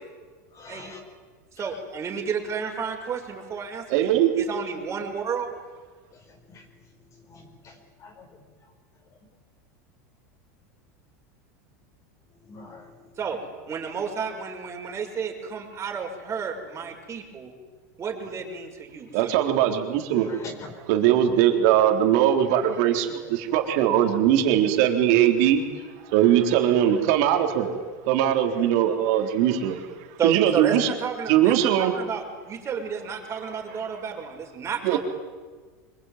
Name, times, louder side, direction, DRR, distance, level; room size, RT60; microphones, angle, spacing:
voice 1, 0.5-1.0 6.5-6.6 7.3-8.4 12.5-12.9 20.1-20.7 28.6-28.7, left 4 dB, 35° left, 1 dB, 4.8 m, -43 dB
voice 2, 1.5-5.5 13.2-13.4 13.7-17.5 18.0-19.4 30.2-35.0, right 6 dB, 30° right, 2 dB, 6.1 m, -31 dB
voice 3, 3.9-4.3 19.1-20.3 20.9-25.6 26.1-27.7 28.1-29.8 30.2-30.9 31.3-31.9 34.8-35.0, right 11 dB, 65° right, 5 dB, 3.8 m, -20 dB
25.0 x 22.5 x 9.4 m, 1.4 s
supercardioid pair, 115°, 9 cm